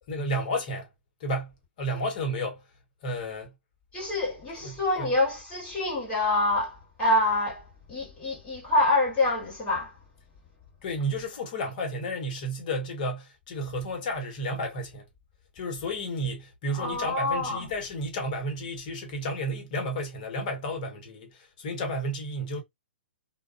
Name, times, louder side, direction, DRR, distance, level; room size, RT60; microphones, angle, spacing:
voice 1, 0.1-0.9 1.2-1.5 1.8-2.6 3.0-3.5 4.6-5.1 10.8-15.1 15.5-22.6, equal, 45° left, 1.0 m, -32 dB
voice 2, 3.9-9.9 16.8-17.7, left 2 dB, 20° left, 1.4 m, -26 dB
2.4 x 2.2 x 2.3 m
figure-of-eight pair, 125°, 6 cm